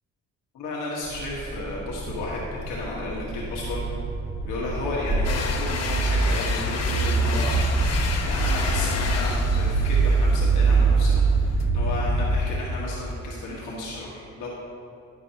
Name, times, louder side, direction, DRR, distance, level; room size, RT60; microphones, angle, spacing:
voice 1, 0.5-3.8 4.4-7.5 8.2-14.5, left 2 dB, 90° left, -5 dB, 1.5 m, -33 dB
sound 1, 1.0-12.4, right 3 dB, 40° right, 1.2 m, -24 dB
sound 2, 5.2-11.6, left 5 dB, 55° left, 1.0 m, -32 dB
11.0 x 8.2 x 2.9 m, 2.5 s
cardioid pair, 90°, 30 cm